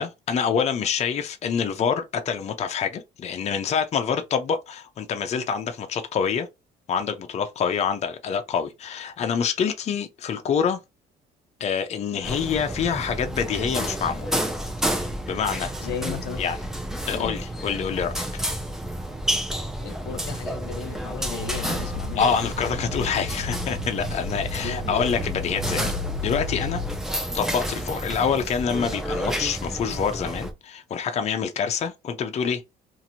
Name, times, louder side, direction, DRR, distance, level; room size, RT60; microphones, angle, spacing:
voice 1, 0.0-6.5 6.9-10.8 11.6-14.4 14.9-15.7 16.4-16.6 17.1-18.3 22.2-25.9 26.2-26.8 27.3-32.6, left 7 dB, 40° left, 0.6 m, -26 dB
sound 1, 12.2-30.5, right 1 dB, 5° right, 0.7 m, -30 dB
voice 2, 15.8-16.4 17.1-17.3 19.8-22.2 24.6-24.9, left 7 dB, 85° left, 0.7 m, -35 dB
sound 2, 21.3-27.1, left 3 dB, 80° right, 0.7 m, -34 dB
2.9 x 2.5 x 2.7 m
cardioid pair, 110°, 17 cm